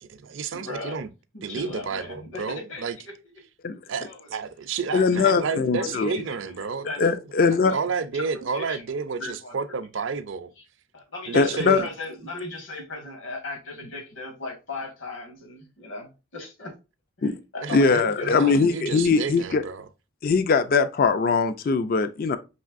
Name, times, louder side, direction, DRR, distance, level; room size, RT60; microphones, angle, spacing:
voice 1, 0.0-1.1 1.4-3.0 3.9-6.9 7.7-10.5 11.3-11.9 17.6-19.9, right 5 dB, 60° right, 0.5 m, -31 dB
voice 2, 0.5-1.0 1.5-3.1 4.0-4.3 4.9-5.3 5.8-6.6 6.8-7.1 7.6-7.7 8.1-8.8 9.2-9.5 10.9-16.7 17.2-18.4, left 2 dB, 65° left, 1.6 m, -37 dB
voice 3, 4.9-6.1 7.0-7.8 11.3-11.8 17.2-17.4 17.7-19.6 20.2-22.4, left 4 dB, 45° left, 0.3 m, -21 dB
5.4 x 3.2 x 2.4 m
head